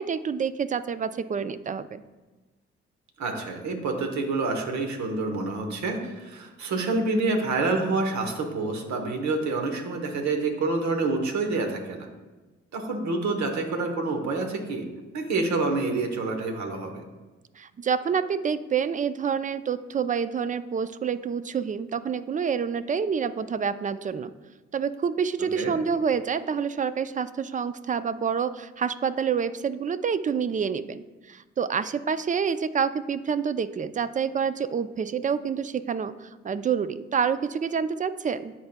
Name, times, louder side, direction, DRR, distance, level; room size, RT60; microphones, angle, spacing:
voice 1, 0.0-2.0 17.6-24.3 24.7-38.5, right 6 dB, 25° right, 14 dB, 0.4 m, -28 dB
voice 2, 3.2-12.1 12.7-14.8 15.1-17.0 25.5-25.7, right 3 dB, 70° right, 4 dB, 1.0 m, -27 dB
10.0 x 4.2 x 2.2 m, 1.2 s
hypercardioid pair, 45°, 30 cm